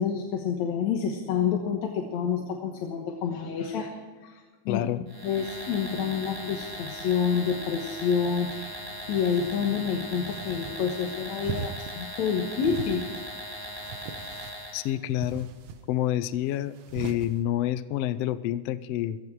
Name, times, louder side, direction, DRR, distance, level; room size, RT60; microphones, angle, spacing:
voice 1, 0.0-4.8 5.2-8.8 9.1-13.1 13.6-13.7, left 7 dB, 65° left, 1 dB, 2.4 m, -28 dB
voice 2, 4.7-5.0 14.7-15.5 15.9-19.2, left 12 dB, 90° left, 13 dB, 1.3 m, -28 dB
sound 1, 5.1-15.0, equal, 10° right, 1.2 m, -39 dB
sound 2, 9.1-9.7 10.2-10.8 11.4-12.0 12.6-13.3 13.7-14.6 15.2-15.8 16.8-17.3, right 6 dB, 65° right, 1.9 m, -39 dB
16.5 x 15.5 x 4.6 m, 1.4 s
omnidirectional pair, 3.6 m